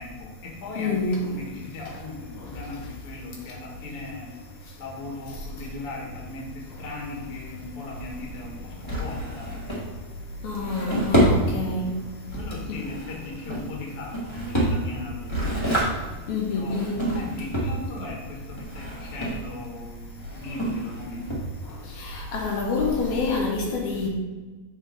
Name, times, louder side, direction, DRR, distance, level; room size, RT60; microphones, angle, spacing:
voice 1, 0.0-4.3 4.8-9.9 12.3-15.8 16.5-16.9 17.2-21.5, left 2 dB, 55° left, 2.0 m, -38 dB
voice 2, 0.8-1.2 10.4-11.9 12.7-12.8 16.3-17.1 22.0-24.1, left 3 dB, 80° left, 2.4 m, -27 dB
Drawer open or close, 6.7-21.9, right 1 dB, 20° left, 0.7 m, -29 dB
7.4 x 4.4 x 3.7 m
omnidirectional pair, 3.4 m